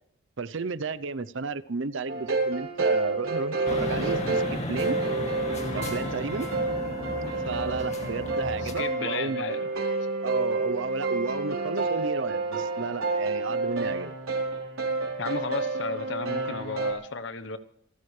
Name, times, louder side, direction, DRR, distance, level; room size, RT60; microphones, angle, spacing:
voice 1, 0.4-5.0 5.7-6.5 7.4-9.4 10.2-14.2, right 4 dB, 60° right, 15 dB, 0.7 m, -33 dB
sound 1, 2.1-16.9, right 3 dB, 85° right, 4.3 m, -29 dB
sound 2, 3.7-8.7, left 1 dB, 30° left, 2.4 m, -34 dB
voice 2, 8.6-9.7 15.2-17.6, left 4 dB, 55° left, 11 dB, 1.0 m, -34 dB
27.5 x 14.5 x 3.3 m, 0.69 s
head